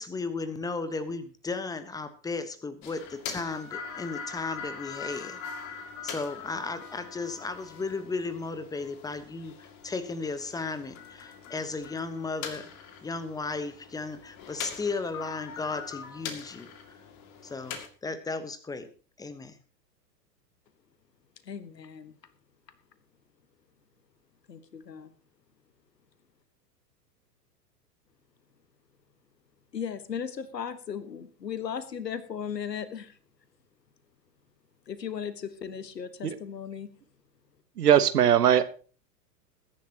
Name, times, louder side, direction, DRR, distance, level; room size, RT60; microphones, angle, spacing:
voice 1, 0.0-5.4 6.0-12.7 13.0-16.9 17.4-18.9 19.2-19.6, left 3 dB, 5° left, 13 dB, 1.1 m, -35 dB
sound 1, 2.8-17.9, left 6 dB, 35° left, 2.3 m, -42 dB
voice 2, 21.4-22.3 24.5-25.1 29.7-33.2 34.8-36.9, left 7 dB, 75° left, 14 dB, 1.5 m, -37 dB
voice 3, 37.8-38.6, right 9 dB, 65° right, 13 dB, 1.3 m, -19 dB
21.0 x 10.5 x 2.9 m, 0.38 s
figure-of-eight pair, 100°, 50 cm